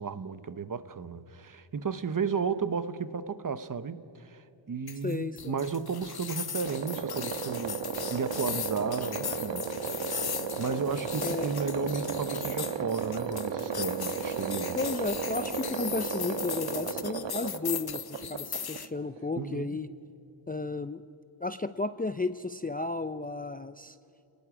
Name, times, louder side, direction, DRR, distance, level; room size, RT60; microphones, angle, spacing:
voice 1, 0.0-7.8 8.1-14.8 19.4-19.8, right 5 dB, 40° right, 0.9 m, -34 dB
sound 1, 4.9-18.9, left 8 dB, 50° left, 0.7 m, -38 dB
voice 2, 5.0-5.6 11.2-11.5 14.7-19.9 20.5-21.0 21.4-24.0, left 3 dB, 20° left, 0.4 m, -33 dB
sound 2, 6.7-19.3, right 6 dB, 65° right, 1.2 m, -34 dB
28.5 x 19.0 x 4.9 m
wide cardioid pair, 100°, 48 cm